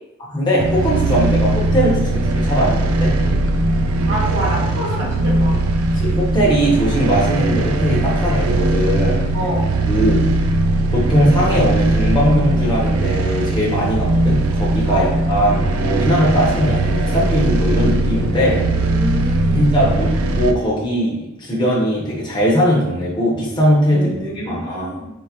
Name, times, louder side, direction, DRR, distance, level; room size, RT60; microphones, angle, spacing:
voice 1, 0.3-3.1 5.9-9.2 9.9-10.2 10.9-18.6 19.5-25.0, equal, 20° left, -5 dB, 1.0 m, -19 dB
sound 1, 0.6-20.5, right 2 dB, 90° right, 0.4 m, -19 dB
voice 2, 4.1-5.5 9.3-9.7 14.9-15.1 18.7-19.6 23.9-25.1, equal, 60° right, -11 dB, 1.4 m, -26 dB
4.8 x 3.1 x 3.0 m, 0.92 s
head